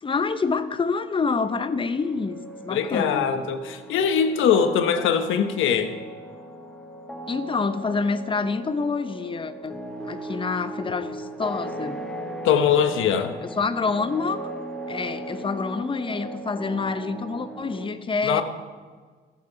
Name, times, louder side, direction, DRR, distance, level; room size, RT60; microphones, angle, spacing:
voice 1, 0.0-3.2 7.3-9.8 10.0-12.0 13.6-14.4 14.9-18.4, left 4 dB, 25° left, 12 dB, 0.7 m, -27 dB
sound 1, 1.3-17.9, right 1 dB, 5° left, 1.0 m, -38 dB
voice 2, 2.7-5.9 12.4-13.3 18.2-18.4, left 7 dB, 85° left, 9 dB, 0.9 m, -22 dB
13.5 x 7.4 x 4.8 m, 1.5 s
cardioid pair, 90°, 20 cm